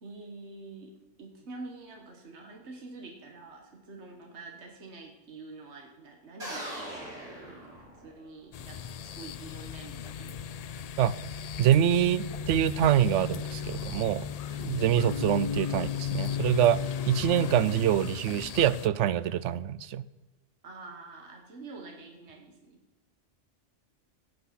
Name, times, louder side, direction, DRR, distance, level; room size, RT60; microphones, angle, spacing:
voice 1, 0.0-10.4 14.5-14.8 17.4-17.7 20.6-22.8, right 3 dB, 70° right, 2 dB, 1.7 m, -47 dB
sound 1, 6.4-8.3, right 1 dB, 35° right, 4.6 m, -40 dB
sound 2, 8.5-18.9, left 7 dB, 70° left, 0.3 m, -35 dB
voice 2, 11.6-14.2 14.7-16.8 17.1-20.0, right 10 dB, 85° right, 18 dB, 0.9 m, -25 dB
16.5 x 8.0 x 5.8 m, 1.2 s
omnidirectional pair, 1.2 m